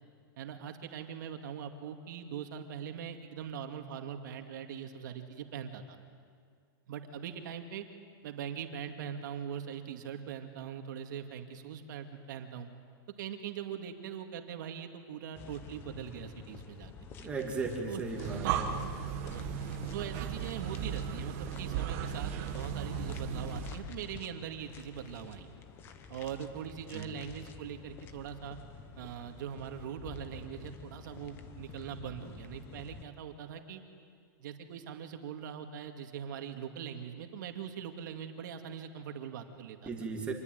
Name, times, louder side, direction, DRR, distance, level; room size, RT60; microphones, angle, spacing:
voice 1, 0.4-6.0 6.9-7.9 8.2-12.7 13.2-16.9 17.2-17.3 17.9-18.6 19.2-19.4 19.9-25.5 26.1-28.6 29.0-33.8 34.4-39.9, right 8 dB, 55° right, 5 dB, 2.4 m, -42 dB
sound 1, 15.3-33.0, left 6 dB, 20° left, 1.0 m, -49 dB
voice 2, 17.2-18.7 26.9-27.1 39.9-40.3, right 4 dB, 10° right, 1 dB, 2.5 m, -36 dB
Breathing, 18.0-23.8, right 8 dB, 35° right, 1.5 m, -36 dB
26.5 x 21.0 x 9.5 m, 2.2 s
supercardioid pair, 175°, 12 cm